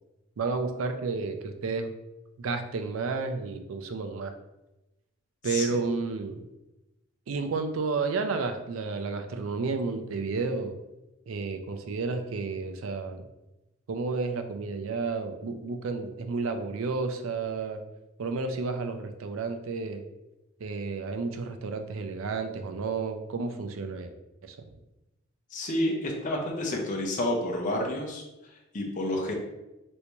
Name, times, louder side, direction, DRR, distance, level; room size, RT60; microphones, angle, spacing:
voice 1, 0.4-1.9 2.4-4.3 5.4-6.5 7.3-10.8 11.3-13.3 13.9-17.8 18.2-20.0 20.6-24.1 24.4-24.6, right 4 dB, 85° right, 7 dB, 0.4 m, -31 dB
voice 2, 25.5-28.2 28.7-29.3, left 1 dB, 40° left, -1 dB, 0.6 m, -29 dB
3.3 x 2.6 x 3.0 m, 0.98 s
head